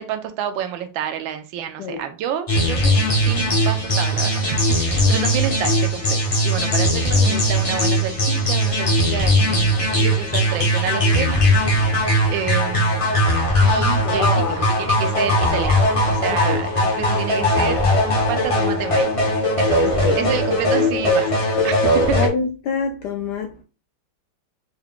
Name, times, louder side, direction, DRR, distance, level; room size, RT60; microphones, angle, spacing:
voice 1, 0.0-2.9 3.2-6.2 6.4-13.1 13.6-14.4 14.8-17.8 18.3-19.3 19.6-19.9 20.2-21.7 22.1-22.2, right 9 dB, 80° right, 1.3 m, -29 dB
sound 1, 2.5-22.3, equal, 35° left, 0.5 m, -19 dB
voice 2, 14.0-14.6 16.3-16.6 19.8-20.2 22.1-23.6, left 5 dB, 75° left, 1.0 m, -26 dB
4.7 x 2.2 x 3.5 m
omnidirectional pair, 2.2 m